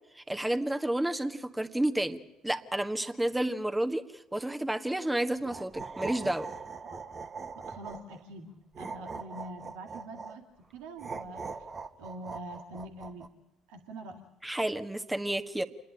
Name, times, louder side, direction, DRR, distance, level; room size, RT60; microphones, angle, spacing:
voice 1, 0.1-6.5 14.4-15.6, right 1 dB, 10° right, 7 dB, 1.5 m, -31 dB
sound 1, 5.4-8.2 8.7-10.4 11.0-13.3, right 4 dB, 40° right, 1.6 m, -41 dB
voice 2, 7.5-11.7 12.0-13.3 13.7-14.3, right 1 dB, 75° right, 2 dB, 2.2 m, -45 dB
28.0 x 11.0 x 9.9 m, 1.1 s
hypercardioid pair, 60°, 0 cm